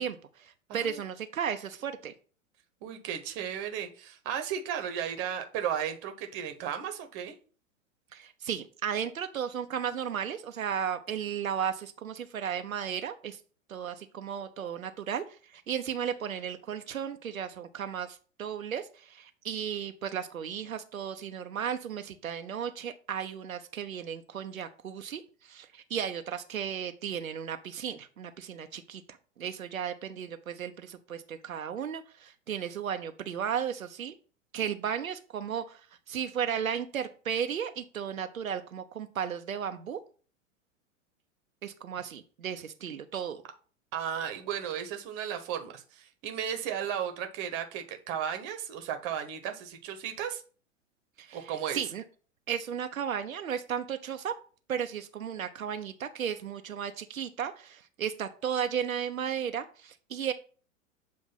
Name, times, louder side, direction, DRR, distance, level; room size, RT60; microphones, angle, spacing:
voice 1, 0.0-2.1 8.1-13.4 13.7-29.0 29.4-34.1 34.5-40.0 41.6-43.4 51.2-52.0 52.5-54.3 54.7-60.3, right 8 dB, 85° right, 7 dB, 0.6 m, -35 dB
voice 2, 0.7-1.0 2.8-7.4 43.9-50.4 51.3-51.8, right 9 dB, 35° right, 7 dB, 0.9 m, -35 dB
7.3 x 2.6 x 5.6 m, 0.39 s
figure-of-eight pair, 95°, 40 cm